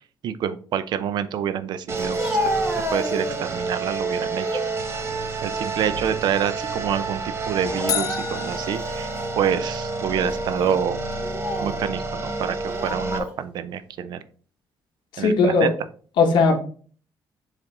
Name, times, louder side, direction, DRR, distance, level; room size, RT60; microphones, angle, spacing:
voice 1, 0.2-2.2 2.9-4.6 5.4-9.1 9.4-11.0 11.6-14.2 15.2-15.7, right 8 dB, 65° right, 13 dB, 0.6 m, -27 dB
sound 1, 1.9-13.2, right 3 dB, 35° right, 1.1 m, -29 dB
Speech, 2.0-3.6 4.1-4.7 5.1-6.3 6.6-6.8 7.6-8.6 9.2-9.3 10.1-10.3 11.1-11.8 12.7-13.4, left 1 dB, 10° right, 1.9 m, -31 dB
sound 2, 7.9-10.0, left 9 dB, 50° left, 0.5 m, -32 dB
voice 2, 15.1-15.7 16.2-16.6, left 4 dB, 80° left, 2 dB, 1.1 m, -18 dB
7.3 x 3.4 x 3.8 m, 0.43 s
cardioid pair, 140°, 8 cm